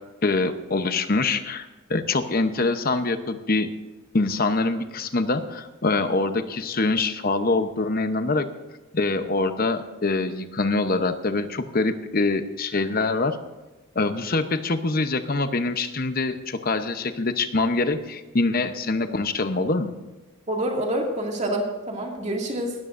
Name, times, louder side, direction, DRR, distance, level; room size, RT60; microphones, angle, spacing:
voice 1, 0.2-3.7 4.1-8.5 8.9-13.4 13.9-19.9, left 3 dB, 45° left, 9 dB, 0.8 m, -24 dB
voice 2, 20.5-22.8, right 1 dB, 30° right, 0 dB, 2.3 m, -27 dB
19.0 x 13.5 x 2.6 m, 1.2 s
head